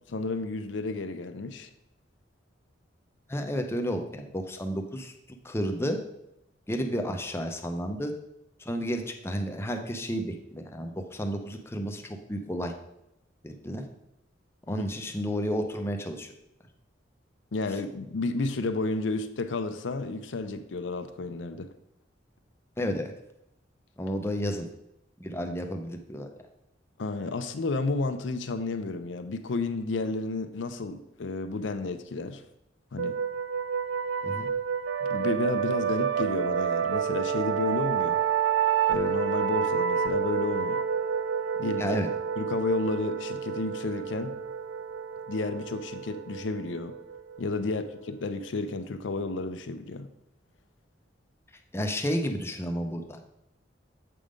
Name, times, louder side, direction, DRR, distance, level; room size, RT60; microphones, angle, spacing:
voice 1, 0.1-1.7 14.7-14.9 17.5-21.7 27.0-32.4 32.9-33.2 35.0-38.2 38.9-40.8 41.6-42.0 42.4-44.3 45.3-46.9 47.4-50.1, left 3 dB, 80° left, 9 dB, 0.5 m, -31 dB
voice 2, 3.3-6.0 6.7-8.1 8.6-12.7 13.4-13.8 14.7-16.3 22.8-23.1 24.0-24.7 25.2-26.3 34.2-34.5 41.8-42.1 51.7-53.2, equal, 15° left, 4 dB, 0.5 m, -31 dB
sound 1, 33.0-48.3, right 7 dB, 75° right, 0.3 m, -29 dB
7.6 x 3.7 x 5.1 m, 0.84 s
head